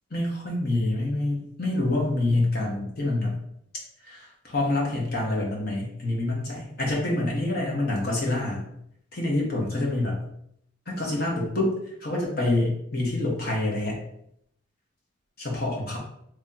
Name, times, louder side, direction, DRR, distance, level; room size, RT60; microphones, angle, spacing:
voice 1, 0.1-3.3 4.0-8.6 9.1-10.2 10.9-11.7 12.0-14.0 15.4-16.0, left 2 dB, 50° left, -3 dB, 1.1 m, -26 dB
3.0 x 2.9 x 3.8 m, 0.74 s
head